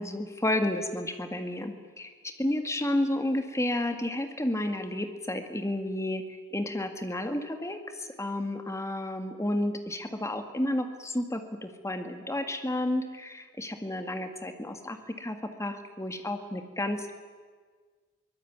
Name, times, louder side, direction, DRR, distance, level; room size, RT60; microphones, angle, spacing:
voice 1, 0.0-6.2 6.5-17.1, left 1 dB, 15° left, 7 dB, 2.0 m, -31 dB
23.5 x 20.0 x 9.5 m, 1.5 s
head